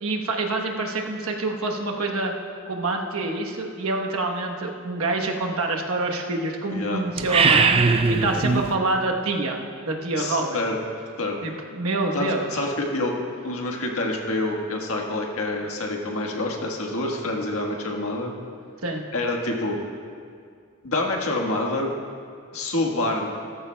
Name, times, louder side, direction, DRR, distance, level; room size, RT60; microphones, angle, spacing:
voice 1, 0.0-2.3 2.7-9.6 9.8-10.6 11.4-12.7 18.8-19.0, right 2 dB, 80° right, 2 dB, 1.1 m, -26 dB
voice 2, 6.7-7.0 10.1-10.8 11.2-11.4 12.1-13.1 13.4-18.3 19.1-19.8 20.8-21.9 22.5-23.3, left 2 dB, 85° left, 1 dB, 1.5 m, -27 dB
sound 1, 7.2-8.8, right 4 dB, 25° right, 0.4 m, -19 dB
16.0 x 14.0 x 2.3 m, 2.3 s
head